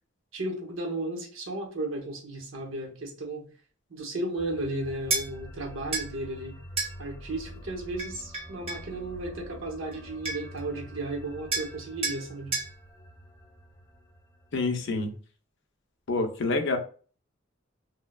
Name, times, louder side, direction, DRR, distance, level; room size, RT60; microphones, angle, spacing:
voice 1, 0.3-3.5 3.9-6.6 7.0-12.5, right 2 dB, 75° right, 1 dB, 0.8 m, -34 dB
sound 1, 4.4-15.2, equal, 15° left, 0.6 m, -46 dB
sound 2, 5.1-5.3 5.9-6.1 6.8-6.9 8.0-8.9 9.9-10.0 10.2-10.6 11.5-11.7 12.0-12.2 12.5-12.7, right 3 dB, 30° right, 0.7 m, -30 dB
voice 2, 14.5-15.1 16.1-16.8, left 3 dB, 60° left, 5 dB, 0.5 m, -27 dB
3.1 x 2.1 x 2.2 m, 0.39 s
head